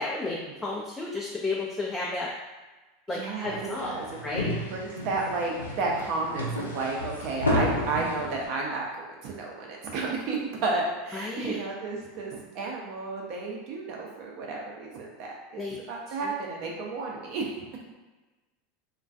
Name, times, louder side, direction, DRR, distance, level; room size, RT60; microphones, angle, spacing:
voice 1, 0.0-2.3 3.1-3.9 4.2-4.5 11.1-11.6 15.6-15.8 16.2-16.3, left 3 dB, 15° left, -4 dB, 0.4 m, -32 dB
voice 2, 3.1-4.0 4.7-15.6 15.9-17.5, right 3 dB, 55° right, -1 dB, 0.6 m, -32 dB
sound 1, 3.4-8.5, left 1 dB, 90° left, 0.5 m, -32 dB
2.2 x 2.2 x 2.5 m, 1.2 s
hypercardioid pair, 85°, 0 cm